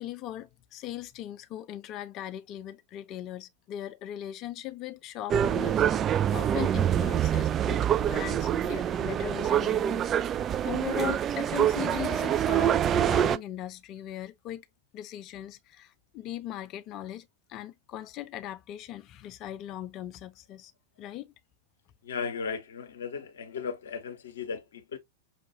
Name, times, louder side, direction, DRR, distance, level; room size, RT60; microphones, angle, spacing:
voice 1, 0.0-5.8 6.3-14.7 14.9-20.7 21.0-21.3, left 12 dB, 35° left, 0.5 m, -39 dB
sound 1, 5.3-13.4, right 9 dB, 25° right, 0.3 m, -26 dB
voice 2, 22.0-25.0, left 5 dB, 65° left, 0.9 m, -36 dB
5.7 x 2.4 x 2.8 m
figure-of-eight pair, 90°, 0 cm